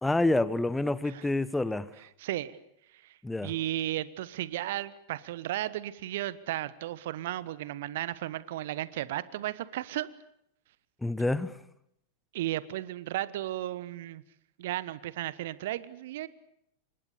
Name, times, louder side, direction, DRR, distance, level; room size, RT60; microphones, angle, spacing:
voice 1, 0.0-1.9 3.2-3.5 11.0-11.6, left 2 dB, 5° left, 1.1 m, -28 dB
voice 2, 2.2-2.6 3.0-3.1 3.4-10.1 12.3-14.2 14.6-16.3, right 14 dB, 55° right, 1.2 m, -34 dB
28.5 x 25.0 x 7.0 m
figure-of-eight pair, 90°, 0 cm